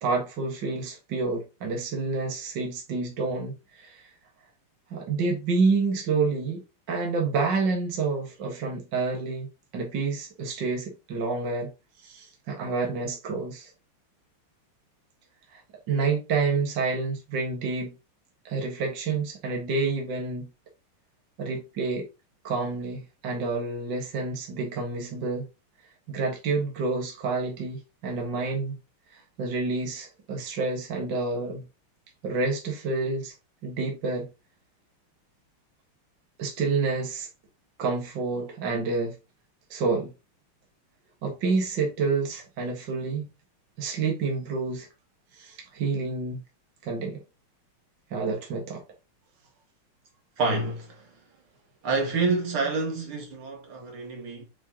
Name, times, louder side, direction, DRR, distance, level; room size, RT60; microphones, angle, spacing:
voice 1, 0.0-4.1 4.9-9.5 9.7-11.7 12.0-13.7 15.5-15.6 15.9-18.0 18.5-20.5 21.4-22.1 22.4-25.4 26.1-28.7 29.1-31.6 32.2-33.3 33.6-34.3 36.4-37.3 37.8-39.1 39.7-40.1 41.2-43.3 43.8-44.9 45.3-46.4 46.8-47.2 48.1-48.8, right 4 dB, 55° right, 2.3 m, -28 dB
voice 2, 50.4-51.1 51.8-54.4, right 3 dB, 80° right, 2.9 m, -28 dB
8.1 x 4.7 x 2.9 m
omnidirectional pair, 2.3 m